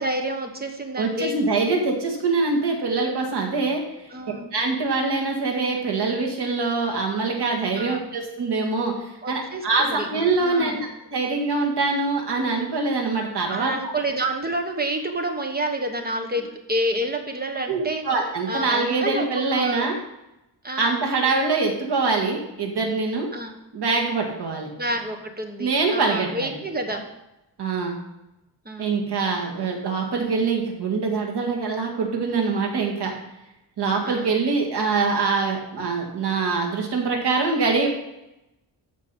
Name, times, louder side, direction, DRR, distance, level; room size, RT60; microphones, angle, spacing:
voice 1, 0.0-1.4 4.1-4.5 7.7-8.1 9.2-10.1 10.4-10.8 13.5-18.0 18.5-19.3 19.5-19.9 20.6-21.0 23.3-23.5 24.7-27.0 28.6-29.1 34.0-34.3, right 1 dB, 25° right, 4 dB, 1.2 m, -29 dB
voice 2, 1.0-3.8 4.5-13.7 17.7-20.0 20.8-23.3 23.7-24.7 25.6-26.5 27.6-28.0 28.8-33.1 33.8-37.9, right 4 dB, 70° right, 0 dB, 2.1 m, -24 dB
14.0 x 5.0 x 5.4 m, 0.93 s
wide cardioid pair, 165°, 41 cm